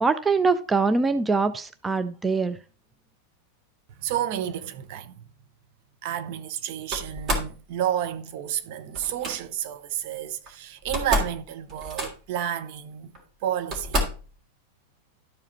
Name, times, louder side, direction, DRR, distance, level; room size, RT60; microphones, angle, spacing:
voice 1, 0.0-2.6, right 4 dB, 15° right, 0.5 m, -23 dB
voice 2, 4.0-5.3 6.0-13.1 13.4-14.1, right 10 dB, 50° right, 0.8 m, -31 dB
Slam, 6.9-7.6 8.9-9.4 10.5-10.6 10.8-11.4 11.7-12.4 13.1-13.2 13.7-14.3, equal, 30° right, 3.1 m, -28 dB
12.5 x 4.9 x 4.2 m
figure-of-eight pair, 90°, 0 cm